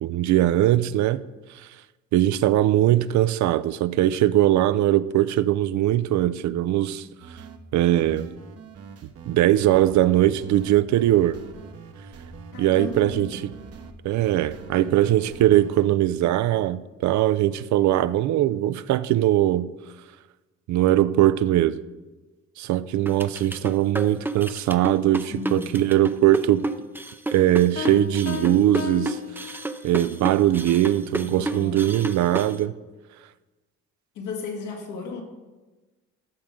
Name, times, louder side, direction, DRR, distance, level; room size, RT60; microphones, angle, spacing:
voice 1, 0.0-1.2 2.1-7.1 7.7-8.3 9.3-11.4 12.6-13.4 14.0-19.7 20.7-21.8 22.6-26.7 27.3-29.6 29.8-32.7, right 13 dB, 70° right, 0.4 m, -21 dB
sound 1, 7.2-15.9, right 5 dB, 50° right, 0.9 m, -43 dB
voice 2, 12.5-13.5 25.3-25.8 31.2-31.8 34.1-35.2, left 4 dB, 85° left, 1.8 m, -34 dB
sound 2, 23.1-32.6, right 2 dB, 5° right, 0.5 m, -30 dB
Piano, 27.8-30.1, left 10 dB, 55° left, 0.8 m, -35 dB
13.0 x 6.2 x 3.7 m
cardioid pair, 90°, 30 cm